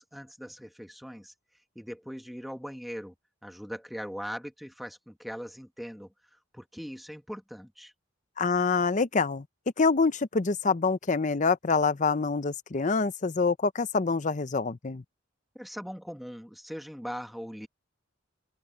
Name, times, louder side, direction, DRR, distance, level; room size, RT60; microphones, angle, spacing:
voice 1, 0.0-1.3 1.7-3.1 3.4-6.1 6.5-7.9 15.5-17.7, equal, ahead, 1.6 m, -40 dB
voice 2, 8.4-9.4 9.8-15.0, left 4 dB, 35° left, 0.6 m, -26 dB
head